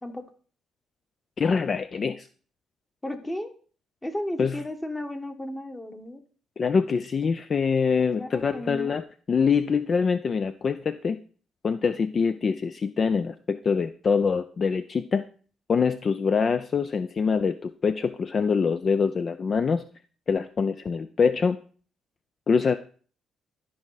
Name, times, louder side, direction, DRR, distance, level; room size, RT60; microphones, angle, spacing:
voice 1, 1.4-2.3 4.4-4.5 6.6-11.2 11.6-15.2 15.7-19.8 20.3-21.6 22.5-22.8, left 5 dB, 45° left, 11 dB, 0.4 m, -24 dB
voice 2, 3.0-3.5 4.0-6.2 8.2-8.9, left 1 dB, 15° left, 7 dB, 1.2 m, -34 dB
12.5 x 4.9 x 4.0 m, 0.42 s
cardioid pair, 90°, 0 cm